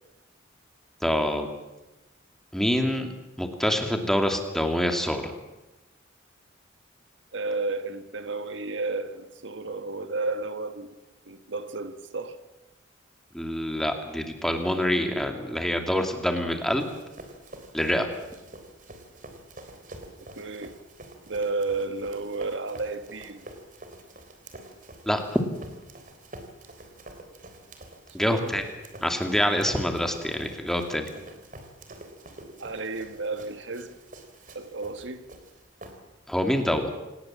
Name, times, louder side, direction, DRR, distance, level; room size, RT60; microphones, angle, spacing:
voice 1, 1.0-1.5 2.5-3.1 3.4-5.3 13.3-16.9 17.7-18.1 25.1-25.5 28.1-28.6 29.0-31.1 36.3-36.9, equal, ahead, 2.5 m, -26 dB
voice 2, 7.3-10.9 11.2-12.4 20.3-20.8 21.3-23.4 28.3-28.5 32.6-33.9 34.5-35.2, right 3 dB, 75° right, 1.7 m, -32 dB
Run, 16.5-36.4, right 1 dB, 45° right, 3.5 m, -47 dB
27.0 x 19.0 x 7.5 m
head